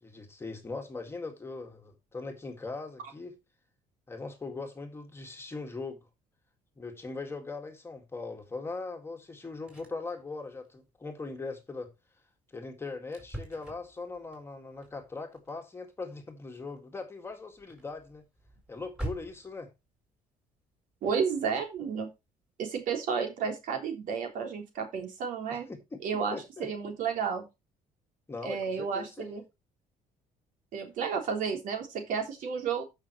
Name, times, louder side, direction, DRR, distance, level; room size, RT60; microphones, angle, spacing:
voice 1, 0.0-3.4 4.1-6.0 6.8-11.9 12.5-18.2 18.7-19.7 25.5-26.0 26.3-26.7 28.3-29.4, left 3 dB, 15° left, 1.9 m, -40 dB
sound 1, 9.6-10.1 10.4-10.7 11.0-11.3 11.7-11.9 12.5-12.6 13.1-19.7 21.5-22.0 22.4-22.5 22.9-23.0, right 1 dB, 5° right, 4.6 m, -45 dB
voice 2, 21.0-22.1 22.6-25.7 26.0-27.4 28.4-29.4 30.7-32.8, right 6 dB, 65° right, 3.4 m, -32 dB
14.5 x 5.9 x 3.0 m
cardioid pair, 135°, 15 cm